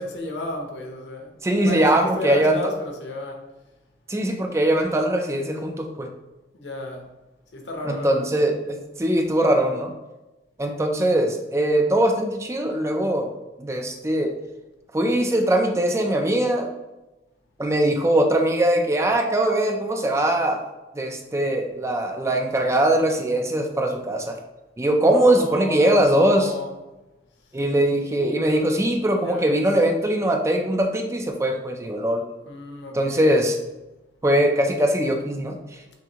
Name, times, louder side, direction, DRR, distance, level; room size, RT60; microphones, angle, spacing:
voice 1, 0.0-1.3 1.6-3.5 6.5-7.1 7.5-8.3 25.1-26.7 28.1-28.8 29.2-29.6 32.4-33.4 35.8-35.9, left 2 dB, 85° left, 2 dB, 0.9 m, -32 dB
voice 2, 1.4-2.6 4.1-6.1 7.8-9.9 10.6-13.3 13.6-14.3 14.9-16.7 17.6-20.7 20.9-24.4 24.8-26.5 27.5-32.2 32.9-33.6 34.2-35.8, right 1 dB, 15° right, 3 dB, 0.4 m, -21 dB
5.9 x 2.6 x 2.9 m, 1.0 s
head